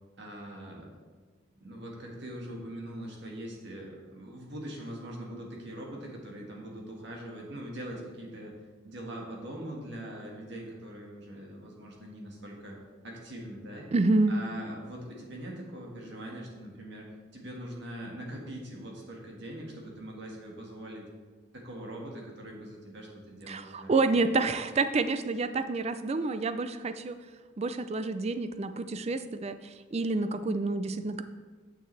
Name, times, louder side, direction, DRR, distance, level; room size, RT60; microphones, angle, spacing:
voice 1, 0.2-0.9 1.5-13.9 14.3-21.1 21.5-24.2, right 1 dB, 60° right, -1 dB, 1.6 m, -42 dB
voice 2, 13.9-14.3 23.5-27.2 27.6-29.6 29.9-31.2, right 3 dB, 30° right, 11 dB, 0.3 m, -28 dB
9.1 x 6.8 x 3.3 m, 1.4 s
head